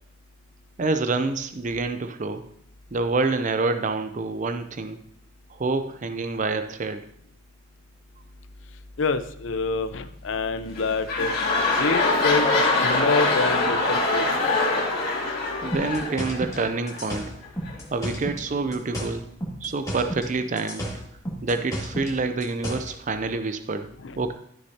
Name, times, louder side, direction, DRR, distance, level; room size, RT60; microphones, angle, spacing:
voice 1, 0.8-2.4 2.9-5.0 5.6-7.0 15.6-17.3 17.9-19.2 19.6-20.9 21.4-23.9 24.2-24.3, right 3 dB, 40° right, 9 dB, 0.5 m, -27 dB
voice 2, 9.0-11.3 11.8-14.3 24.0-24.2, left 3 dB, 65° left, 11 dB, 0.6 m, -27 dB
sound 1, 10.6-17.0 17.7-17.8, left 2 dB, 45° left, 2.3 m, -23 dB
sound 2, 15.7-18.5 18.7-20.3 20.6-22.9, right 1 dB, 15° left, 2.1 m, -32 dB
13.0 x 6.6 x 2.8 m, 0.68 s
head